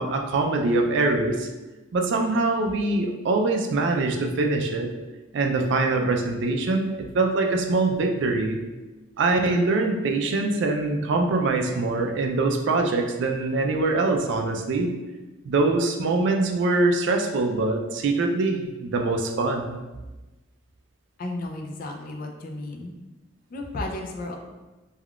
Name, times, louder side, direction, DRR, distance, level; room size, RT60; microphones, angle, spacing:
voice 1, 0.0-1.5 1.9-4.9 5.3-8.6 9.2-14.9 15.4-19.8, right 3 dB, 60° right, 3 dB, 0.3 m, -23 dB
voice 2, 21.2-22.9 23.5-24.4, left 2 dB, 45° left, 2 dB, 0.4 m, -33 dB
3.4 x 2.3 x 2.3 m, 1.1 s
head